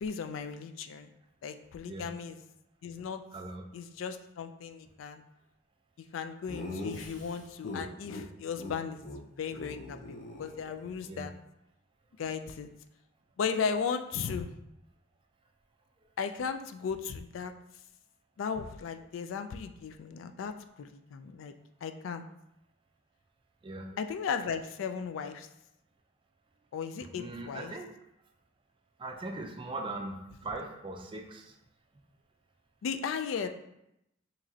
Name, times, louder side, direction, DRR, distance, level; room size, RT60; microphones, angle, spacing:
voice 1, 0.0-1.1 1.4-2.4 2.8-3.2 3.7-5.2 6.0-11.3 12.2-12.7 13.4-14.5 16.2-17.5 18.4-21.5 21.8-22.2 24.0-25.5 26.7-27.7 32.8-33.5, left 6 dB, 75° left, 8 dB, 0.3 m, -36 dB
voice 2, 3.3-3.6 11.1-11.3 23.6-23.9 27.1-27.9 29.0-31.6, right 2 dB, 25° right, 3 dB, 0.4 m, -40 dB
Laughter, 6.5-8.2 8.6-8.7 9.0-9.2 9.5-11.0, left 2 dB, 40° left, 0.6 m, -41 dB
4.9 x 3.0 x 2.7 m, 0.84 s
head